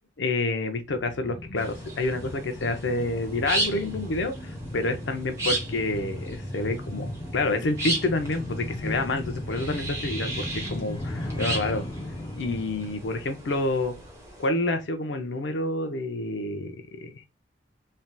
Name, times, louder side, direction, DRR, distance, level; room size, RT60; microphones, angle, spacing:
voice 1, 0.2-11.8 12.4-14.0 14.4-17.3, left 2 dB, 85° left, 0.6 m, -28 dB
sound 1, 1.0-14.2 14.5-14.6, left 1 dB, 25° left, 0.5 m, -36 dB
sound 2, 1.6-14.5, right 1 dB, 15° right, 0.9 m, -36 dB
3.2 x 2.7 x 2.2 m
head